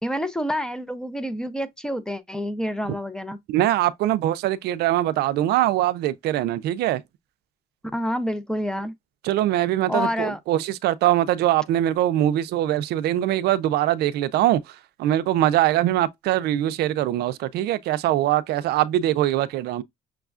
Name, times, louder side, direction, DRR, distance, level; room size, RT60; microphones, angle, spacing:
voice 1, 0.0-3.4 7.9-8.9 9.9-10.4, equal, 5° left, 0.5 m, -28 dB
voice 2, 3.5-7.0 9.2-14.6 15.0-19.8, right 13 dB, 75° right, 0.4 m, -22 dB
6.1 x 2.2 x 2.4 m
cardioid pair, 110°, 17 cm